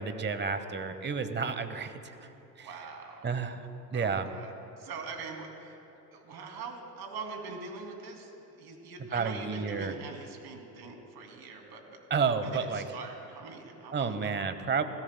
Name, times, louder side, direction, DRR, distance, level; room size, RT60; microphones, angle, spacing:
voice 1, 0.0-1.9 2.6-2.7 3.2-3.6 3.9-4.3 9.1-9.9 12.1-12.8 13.9-14.8, right 5 dB, 20° right, 10 dB, 1.0 m, -30 dB
voice 2, 2.6-3.3 3.9-5.8 6.1-8.3 8.6-14.4, right 4 dB, 50° right, 2 dB, 2.7 m, -43 dB
21.0 x 16.5 x 2.2 m, 2.9 s
hypercardioid pair, 80°, 48 cm